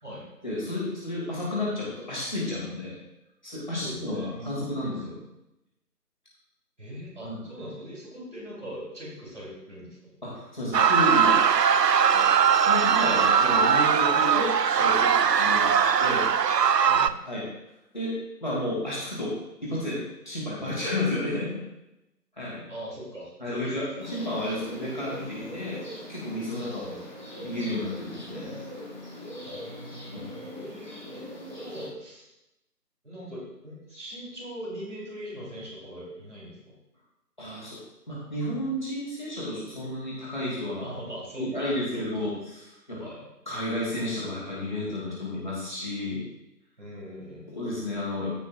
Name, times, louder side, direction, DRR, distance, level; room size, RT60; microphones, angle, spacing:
voice 1, 0.4-3.0 3.4-5.2 7.2-7.4 10.2-11.4 12.1-12.3 12.6-16.3 17.2-17.5 17.9-18.2 18.4-19.4 19.6-21.6 22.4-22.7 23.4-25.8 26.1-27.0 27.4-28.5 30.1-30.3 37.4-37.8 38.1-40.8 41.4-43.1 43.5-46.2 47.5-48.4, left 1 dB, 30° left, -7 dB, 2.5 m, -31 dB
voice 2, 3.7-5.0 6.8-10.1 16.9-17.2 22.7-24.0 26.5-27.1 29.4-32.3 33.0-36.8 40.7-42.3 43.0-43.2 46.8-47.6, equal, 45° right, -6 dB, 3.6 m, -41 dB
sound 1, 10.7-17.1, right 7 dB, 85° right, 0.6 m, -21 dB
sound 2, 24.0-31.9, left 1 dB, 30° right, 1.3 m, -41 dB
15.5 x 6.1 x 2.5 m, 0.91 s
figure-of-eight pair, 170°, 48 cm